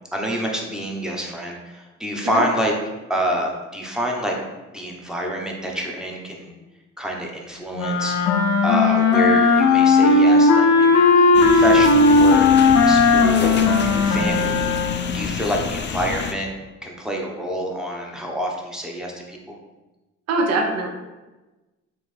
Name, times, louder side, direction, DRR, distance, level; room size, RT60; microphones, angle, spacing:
voice 1, 0.1-2.7 3.1-4.3 4.7-6.5 7.0-14.7 15.1-16.5 16.8-19.6, equal, ahead, -1 dB, 0.8 m, -27 dB
sound 1, 7.8-15.1, left 3 dB, 80° left, 0.6 m, -16 dB
sound 2, 11.3-16.3, left 5 dB, 40° left, 0.4 m, -28 dB
voice 2, 20.3-20.9, right 2 dB, 55° right, 2 dB, 0.8 m, -23 dB
4.4 x 3.1 x 3.2 m, 1.1 s
cardioid pair, 90°, 30 cm